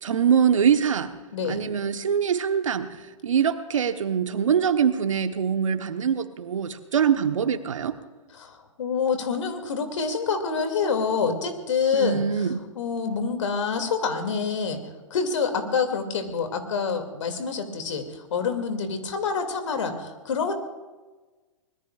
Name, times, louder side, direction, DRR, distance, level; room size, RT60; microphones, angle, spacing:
voice 1, 0.0-1.1 1.5-2.9 3.2-8.0 11.9-12.6, right 7 dB, 70° right, 9 dB, 1.3 m, -23 dB
voice 2, 8.4-12.5 12.7-14.8 15.1-20.6, left 5 dB, 65° left, 6 dB, 2.6 m, -27 dB
25.0 x 20.5 x 2.5 m, 1.2 s
figure-of-eight pair, 110°, 17 cm